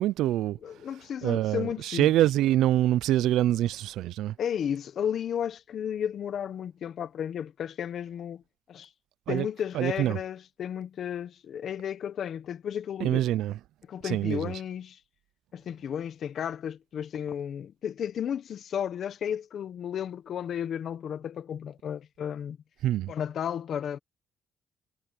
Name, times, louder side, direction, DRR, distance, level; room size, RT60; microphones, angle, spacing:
voice 1, 0.0-0.6 1.2-4.3 9.3-9.5 9.7-10.2 13.0-13.5 14.0-14.5 22.8-23.1, right 13 dB, 85° right, 0.4 m, -25 dB
voice 2, 0.6-2.1 4.4-8.4 8.7-8.9 9.3-13.2 13.9-15.0 15.5-22.6 23.1-24.0, left 9 dB, 65° left, 1.1 m, -33 dB
cardioid pair, 90°, 0 cm